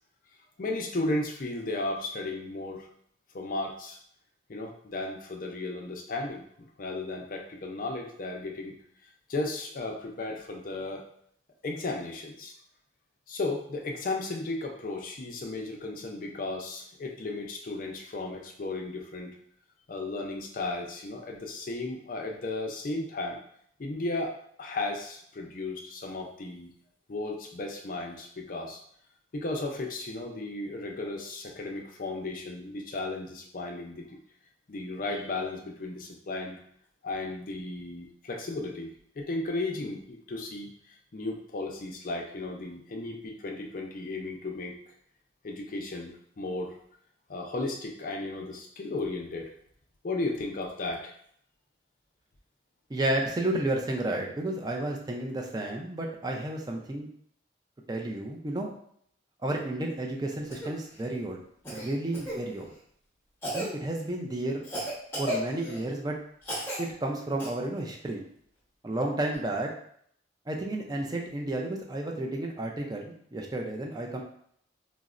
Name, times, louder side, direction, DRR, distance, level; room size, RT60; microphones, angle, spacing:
voice 1, 0.6-2.9 3.3-4.0 4.5-6.4 6.8-8.7 9.3-11.0 11.6-12.5 13.3-19.3 19.9-23.4 23.8-24.3 24.6-26.7 27.1-28.8 29.3-34.2 34.7-36.6 37.0-38.9 39.2-40.7 41.1-44.7 45.4-46.8 47.3-49.5 50.0-51.1, left 2 dB, 45° left, 1 dB, 0.4 m, -34 dB
voice 2, 52.9-57.1 57.9-58.7 59.4-61.4 61.7-62.7 63.5-64.6 65.2-66.2 66.8-68.2 68.8-69.7 70.5-74.2, right 1 dB, 20° right, 1 dB, 0.4 m, -32 dB
Cough, 60.5-60.7 61.6-62.4 63.4-63.7 64.6-65.8 66.4-66.8 67.4-67.5 69.3-69.4, equal, 15° left, 0.8 m, -34 dB
3.9 x 2.0 x 2.4 m, 0.66 s
head